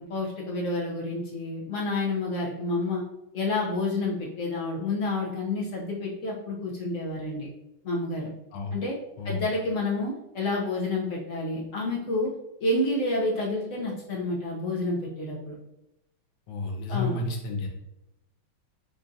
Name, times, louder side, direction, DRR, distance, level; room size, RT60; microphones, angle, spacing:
voice 1, 0.1-3.0 3.3-7.5 7.8-8.3 8.7-8.9 9.2-12.3 12.6-15.5 16.9-17.2, left 2 dB, 65° left, -4 dB, 0.7 m, -29 dB
voice 2, 16.5-17.7, left 3 dB, 85° left, 2 dB, 1.6 m, -31 dB
5.4 x 2.4 x 2.6 m, 0.88 s
omnidirectional pair, 2.2 m